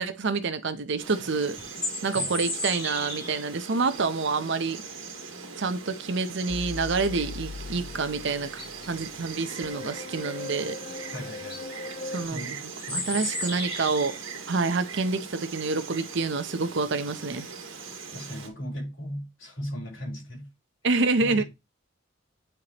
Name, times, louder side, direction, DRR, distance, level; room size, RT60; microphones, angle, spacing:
voice 1, 0.0-1.6 2.0-4.8 5.6-10.8 12.0-12.4 12.9-14.2 14.5-17.5 20.8-21.4, right 4 dB, 65° right, 0.7 m, -27 dB
Insect, 1.0-18.5, right 5 dB, 85° right, 1.8 m, -41 dB
sound 1, 1.6-3.4 7.9-8.0 8.4-8.9 10.9-11.0 11.3-11.6 12.8-14.2, left 1 dB, 25° left, 4.7 m, -33 dB
sound 2, 6.5-12.3, left 3 dB, 40° left, 0.5 m, -40 dB
voice 2, 11.1-11.6 12.2-13.2 18.1-20.5 21.2-21.5, equal, 65° left, 4.2 m, -37 dB
9.1 x 4.5 x 3.0 m
head